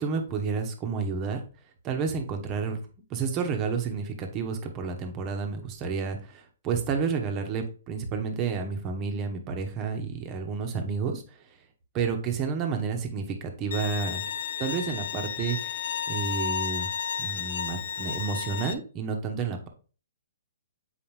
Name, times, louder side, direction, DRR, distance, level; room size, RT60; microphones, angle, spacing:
voice 1, 0.0-1.4 1.8-2.8 3.1-11.2 11.9-14.2 14.6-15.8 16.1-16.9 17.2-19.7, right 5 dB, 30° right, 4 dB, 1.4 m, -30 dB
Bowed string instrument, 13.7-18.7, left 8 dB, 60° left, 0.6 m, -32 dB
7.1 x 4.9 x 3.4 m, 0.37 s
figure-of-eight pair, 125°, 0 cm